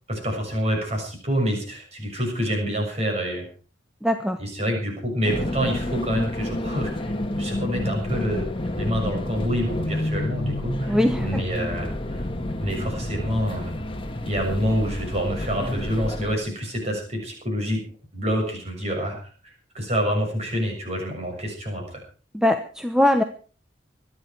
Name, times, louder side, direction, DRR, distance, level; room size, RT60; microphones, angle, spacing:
voice 1, 0.1-3.5 4.4-8.5 8.8-12.2 12.6-13.7 14.2-17.8 18.1-22.0, equal, 35° right, 1 dB, 7.0 m, -27 dB
voice 2, 4.0-4.4 10.9-11.4 22.3-23.2, left 1 dB, 5° right, 7 dB, 0.9 m, -21 dB
sound 1, 5.2-16.4, left 1 dB, 25° left, 1.6 m, -29 dB
25.0 x 10.0 x 4.7 m, 0.39 s
head